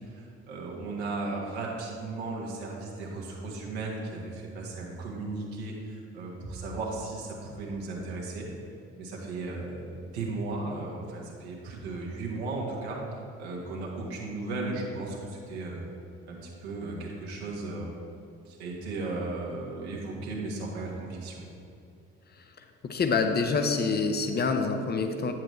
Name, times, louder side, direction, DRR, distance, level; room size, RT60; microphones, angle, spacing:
voice 1, 0.0-8.5 9.0-13.0 13.4-15.8 16.3-17.9 18.4-21.4, right 3 dB, 75° right, -2 dB, 1.3 m, -36 dB
voice 2, 22.8-25.3, left 4 dB, 30° left, 7 dB, 0.7 m, -26 dB
8.8 x 7.3 x 3.2 m, 2.5 s
figure-of-eight pair, 50°, 33 cm